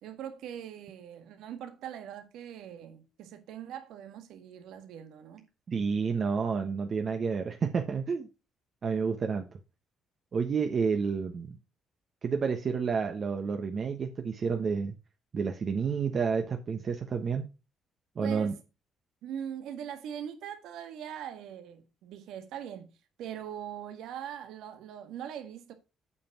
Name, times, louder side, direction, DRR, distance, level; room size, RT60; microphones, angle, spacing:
voice 1, 0.0-5.5 18.2-18.6 19.2-22.9 23.2-25.7, right 9 dB, 80° right, 1.6 m, -41 dB
voice 2, 5.7-8.3 8.8-9.4 10.3-11.6 12.2-14.9 15.3-17.5 18.2-18.5, right 5 dB, 40° right, 1.2 m, -30 dB
8.5 x 5.2 x 6.0 m
cardioid pair, 120°, 0 cm